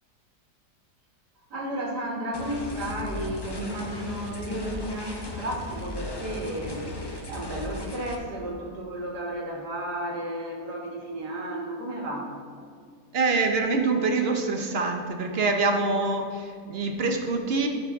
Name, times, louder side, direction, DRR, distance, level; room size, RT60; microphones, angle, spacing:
voice 1, 1.5-6.9 7.3-12.3, right 1 dB, 75° right, -1 dB, 2.1 m, -33 dB
sound 1, 2.3-8.1, left 1 dB, 25° left, 0.5 m, -36 dB
voice 2, 13.1-17.7, right 3 dB, 50° right, 4 dB, 0.8 m, -25 dB
13.5 x 6.0 x 3.6 m, 2.3 s
omnidirectional pair, 1.8 m